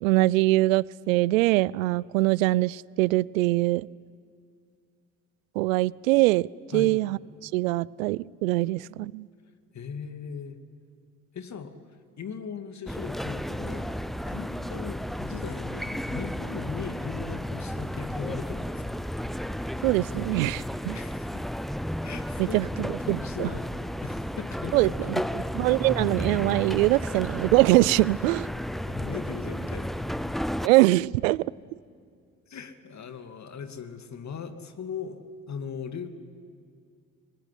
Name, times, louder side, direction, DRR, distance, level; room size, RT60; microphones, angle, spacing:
voice 1, 0.0-3.9 5.6-6.5 6.7-9.3 19.8-21.0 22.4-23.5 24.7-28.5 30.6-31.4, right 19 dB, 80° right, 24 dB, 0.5 m, -23 dB
voice 2, 6.7-7.0 9.7-10.6 11.3-11.7 12.2-14.0 14.2-18.8 20.9-21.5 22.0-25.3 28.8-30.2 32.5-35.2 35.5-36.1, left 6 dB, 45° left, 8 dB, 2.4 m, -38 dB
sound 1, 12.9-30.7, equal, ahead, 0.6 m, -33 dB
23.5 x 20.0 x 9.9 m, 2.2 s
hypercardioid pair, 55°, 39 cm